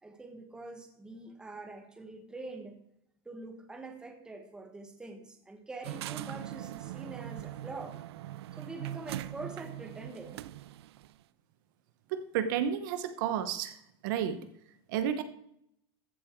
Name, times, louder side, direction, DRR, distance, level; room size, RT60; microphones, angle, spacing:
voice 1, 0.0-2.8 3.2-8.1 8.5-10.4, right 2 dB, 5° right, 5 dB, 1.2 m, -45 dB
sound 1, 5.8-11.1, right 14 dB, 90° right, 0.4 m, -41 dB
voice 2, 12.1-13.8 14.0-14.5 14.9-15.2, right 9 dB, 50° right, 10 dB, 0.9 m, -31 dB
14.5 x 7.5 x 4.5 m, 0.75 s
supercardioid pair, 170°, 13 cm